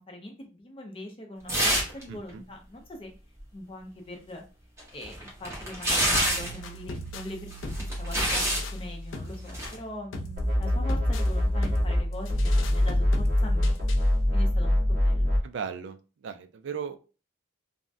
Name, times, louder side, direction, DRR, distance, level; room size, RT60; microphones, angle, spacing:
voice 1, 0.0-3.1 3.5-4.4 4.9-13.8 14.3-15.4, left 1 dB, 25° left, 2 dB, 0.5 m, -42 dB
sound 1, 1.5-2.0 2.3-2.4 4.8-6.6 7.5-8.7 9.5-9.7, right 1 dB, 15° right, 0.8 m, -27 dB
voice 2, 2.1-2.4 15.4-17.0, right 6 dB, 70° right, 8 dB, 0.3 m, -37 dB
sound 2, 6.1-14.1, equal, 85° left, 0.4 m, -37 dB
sound 3, 10.4-12.0 12.3-15.4, left 1 dB, 45° right, 1.3 m, -24 dB
3.4 x 2.1 x 2.5 m, 0.34 s
head